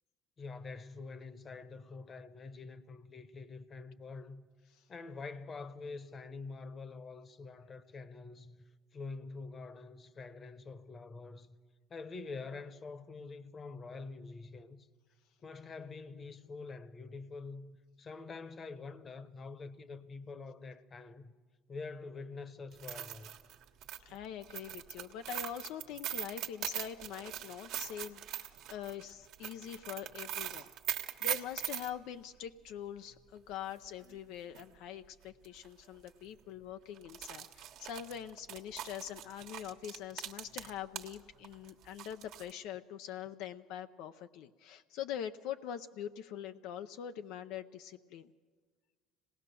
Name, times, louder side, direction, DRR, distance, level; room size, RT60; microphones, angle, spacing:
voice 1, 0.4-4.4 4.9-8.6 8.9-11.6 11.9-14.9 15.4-21.3 21.7-23.3, left 4 dB, 30° left, 1.1 m, -46 dB
sound 1, 22.7-31.9 34.1-34.2 34.5-34.6 35.4-35.7 36.0-36.1 37.0-41.2 41.4-42.5, right 11 dB, 65° right, 1.4 m, -41 dB
voice 2, 24.0-48.3, left 9 dB, 70° left, 0.6 m, -44 dB
25.5 x 18.5 x 6.9 m
supercardioid pair, 110°, 0 cm